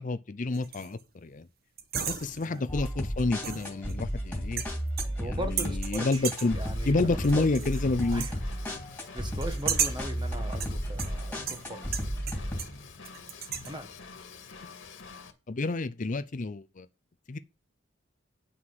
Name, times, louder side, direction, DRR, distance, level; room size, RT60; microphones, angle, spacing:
voice 1, 0.0-1.5 2.1-4.6 5.2-6.6 6.8-8.3 15.5-16.9 17.3-17.4, left 3 dB, 45° left, 0.6 m, -29 dB
sound 1, 0.5-1.0 1.8-2.6 3.4-4.2 4.6-5.3 5.6-6.6 7.2-7.8 8.1-8.4 9.4-10.1 10.6-12.8 13.0-13.7, right 7 dB, 55° right, 1.1 m, -35 dB
sound 2, 2.7-12.6, equal, 10° left, 2.8 m, -33 dB
voice 2, 5.2-6.2 6.6-7.7 8.1-8.4 8.7-8.8 9.1-11.8 13.6-13.9, right 1 dB, 25° right, 1.5 m, -39 dB
Drum kit / Drum, 6.1-15.3, left 4 dB, 90° left, 2.0 m, -47 dB
9.4 x 6.1 x 6.0 m
head